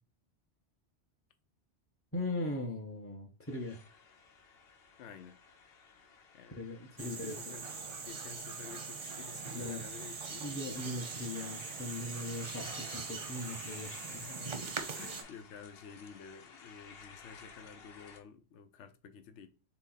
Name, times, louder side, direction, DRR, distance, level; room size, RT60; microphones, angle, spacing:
voice 1, 2.1-3.8 6.6-7.6 9.5-9.9 10.4-14.2, left 1 dB, 20° left, 0.5 m, -39 dB
sound 1, 3.4-18.2, left 5 dB, 65° left, 0.9 m, -55 dB
voice 2, 5.0-5.4 6.3-6.6 7.0-7.7 8.0-10.7 12.5-12.9 14.1-19.5, left 6 dB, 90° left, 0.9 m, -51 dB
sound 2, 7.0-15.2, right 5 dB, 40° right, 0.5 m, -42 dB
4.1 x 3.0 x 3.8 m
omnidirectional pair, 1.2 m